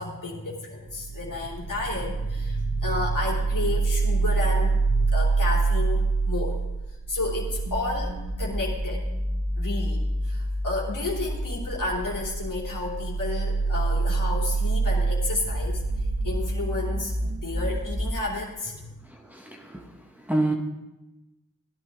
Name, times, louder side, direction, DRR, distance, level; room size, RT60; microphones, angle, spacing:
voice 1, 0.0-6.6 7.1-9.1 9.6-19.0, left 2 dB, 70° left, -3 dB, 3.1 m, -32 dB
sound 1, 0.9-18.2, right 3 dB, 55° right, 3.0 m, -26 dB
voice 2, 19.1-19.9 20.2-20.5, right 2 dB, 5° right, -2 dB, 1.9 m, -28 dB
15.5 x 10.5 x 3.7 m, 1.0 s
cardioid pair, 45°, 33 cm